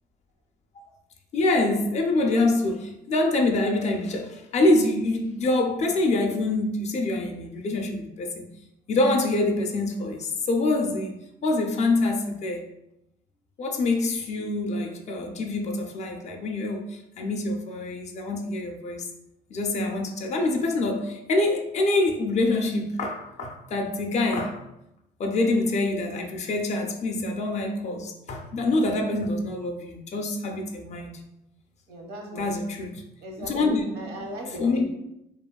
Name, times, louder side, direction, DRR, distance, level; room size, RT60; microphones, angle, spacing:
voice 1, 1.3-8.4 8.9-11.1 11.4-12.7 13.6-19.1 19.5-24.6 25.2-31.2 32.4-33.0 33.4-33.8 34.1-34.2 34.6-34.8, left 2 dB, 40° left, 3 dB, 0.4 m, -25 dB
voice 2, 31.9-32.5 33.2-33.7 33.9-34.8, right 1 dB, 70° right, 1 dB, 0.8 m, -38 dB
2.9 x 2.2 x 2.3 m, 0.86 s
cardioid pair, 110°, 17 cm